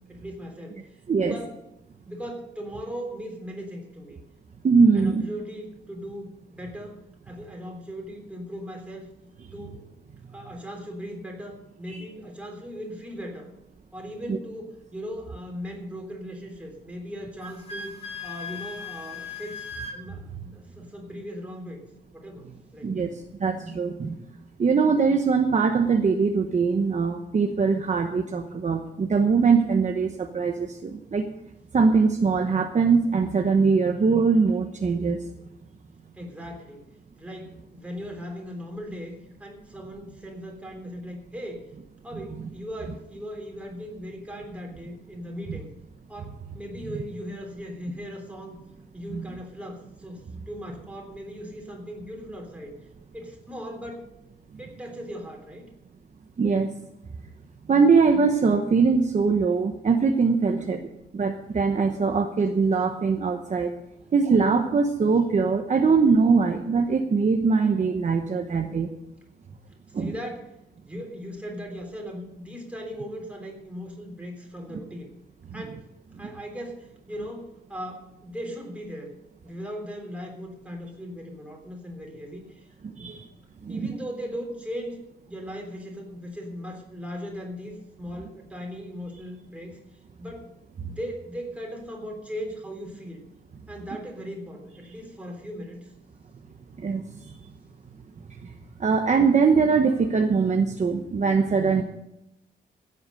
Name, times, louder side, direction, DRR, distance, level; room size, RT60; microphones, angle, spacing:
voice 1, 0.1-0.8 1.2-1.5 2.1-4.2 4.9-9.1 9.5-10.1 10.3-13.5 13.9-17.9 18.2-19.7 19.9-21.8 22.1-22.9 36.2-41.6 42.0-45.7 46.1-48.6 48.9-52.7 53.1-54.1 54.6-55.7 60.5-60.9 64.0-64.1 70.0-70.5 70.8-75.1 75.5-75.9 76.2-79.1 79.4-82.6 83.0-83.3 83.7-85.0 85.3-89.8 90.2-90.5 90.8-93.2 93.7-95.9, equal, 5° right, 1 dB, 3.5 m, -38 dB
voice 2, 4.6-5.2 11.9-12.0 14.3-14.4 22.8-23.1 23.4-24.2 24.6-31.3 31.7-35.2 45.5-45.6 49.1-49.2 56.4-56.7 57.7-60.8 61.1-63.7 64.1-68.9 69.9-70.1 74.7-74.8 82.8-83.2 83.6-83.9 96.8-97.3 98.4-98.5 98.8-101.8, right 5 dB, 40° right, 4 dB, 1.0 m, -22 dB
Wind instrument woodwind instrument, 17.4-20.0, left 4 dB, 30° left, 1.8 m, -37 dB
16.0 x 8.1 x 6.4 m, 0.87 s
wide cardioid pair, 140°, 18 cm